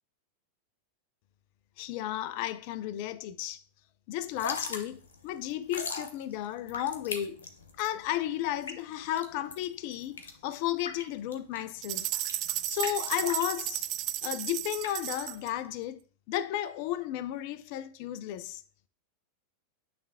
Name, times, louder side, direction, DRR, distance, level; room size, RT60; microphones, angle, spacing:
voice 1, 1.8-3.6 4.1-7.4 7.8-12.1 12.6-13.9 14.2-16.0 16.3-18.6, left 12 dB, 55° left, 0.5 m, -33 dB
Drip / Trickle dribble, 4.2-15.8, left 4 dB, 80° left, 0.9 m, -41 dB
sound 1, 11.8-15.5, right 14 dB, 45° right, 0.4 m, -34 dB
8.5 x 3.4 x 3.5 m
hypercardioid pair, 95°, 0 cm